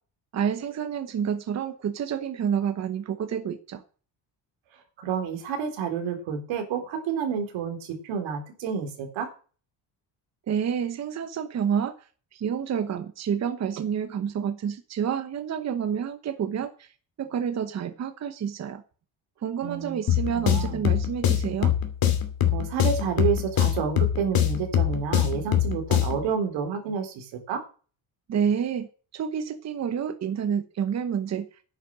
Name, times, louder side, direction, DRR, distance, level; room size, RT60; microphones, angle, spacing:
voice 1, 0.3-3.8 10.5-11.9 12.3-16.9 17.2-18.8 19.4-21.7 28.3-31.5, right 8 dB, 35° right, 9 dB, 1.1 m, -29 dB
voice 2, 5.0-9.3 19.6-20.0 20.3-20.8 22.5-27.6, right 7 dB, 90° right, 5 dB, 3.8 m, -29 dB
sound 1, 20.1-26.3, left 10 dB, 50° left, 2.7 m, -24 dB
10.5 x 9.6 x 6.2 m, 0.38 s
cardioid pair, 165°, 44 cm